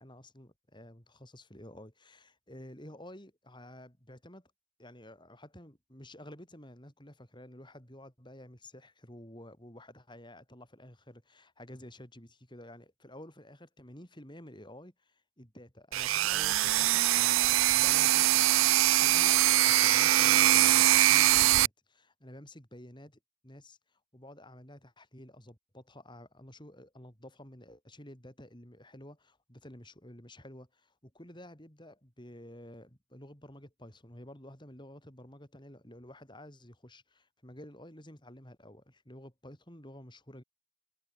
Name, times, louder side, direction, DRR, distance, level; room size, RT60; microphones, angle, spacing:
voice 1, 0.0-4.5 4.8-17.4 17.7-19.4 19.7-40.4, left 1 dB, 20° left, 6.6 m, -51 dB
sound 1, 15.9-21.7, right 15 dB, 70° right, 0.4 m, -23 dB
head